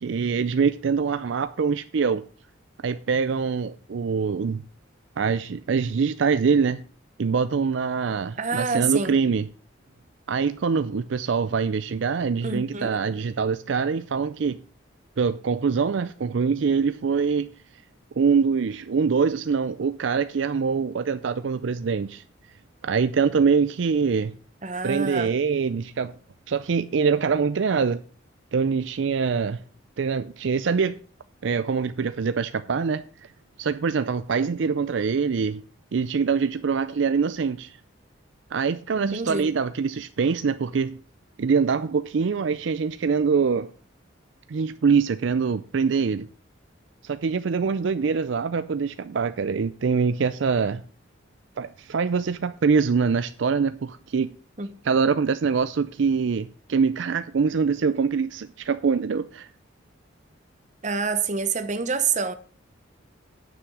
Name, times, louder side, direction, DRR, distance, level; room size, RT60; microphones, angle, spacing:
voice 1, 0.0-2.2 2.8-4.6 5.2-6.8 7.2-9.5 10.3-14.6 15.2-17.5 18.2-22.2 22.8-24.3 24.8-26.1 26.5-28.0 28.5-29.6 30.0-31.0 31.4-33.3 33.6-35.6 35.9-37.8 38.5-41.0 41.4-43.7 44.5-46.3 47.0-50.8 51.6-54.3 54.8-59.5, right 5 dB, 70° right, 0.4 m, -24 dB
voice 2, 8.4-9.1 12.4-12.9 24.6-25.3 38.9-39.5 54.6-54.7 60.8-62.3, right 5 dB, 40° right, 1.0 m, -27 dB
9.9 x 6.1 x 6.2 m
head